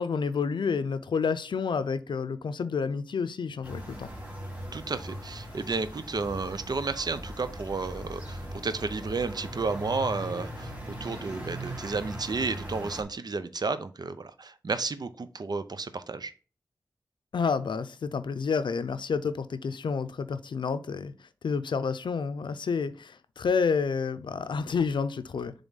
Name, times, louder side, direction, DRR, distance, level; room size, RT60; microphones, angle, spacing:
voice 1, 0.0-4.1 17.3-21.1 21.4-25.5, left 5 dB, 90° left, 13 dB, 0.5 m, -29 dB
sound 1, 3.6-13.0, equal, 20° right, 2.2 m, -39 dB
voice 2, 4.7-10.7 11.0-16.3, right 4 dB, 60° right, 12 dB, 0.6 m, -32 dB
7.1 x 3.5 x 4.0 m, 0.36 s
cardioid pair, 55°, 8 cm